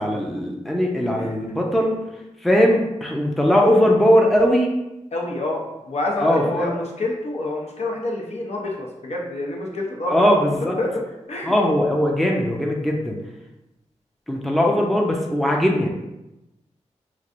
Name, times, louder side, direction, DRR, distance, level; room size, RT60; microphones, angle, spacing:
voice 1, 0.0-2.0 2.4-4.7 6.2-6.7 10.1-10.8 11.4-13.2 14.3-15.9, equal, ahead, -1 dB, 0.5 m, -19 dB
voice 2, 5.1-11.0 11.3-11.5, left 2 dB, 60° left, -2 dB, 0.7 m, -27 dB
3.0 x 2.5 x 2.5 m, 0.96 s
cardioid pair, 55°, 12 cm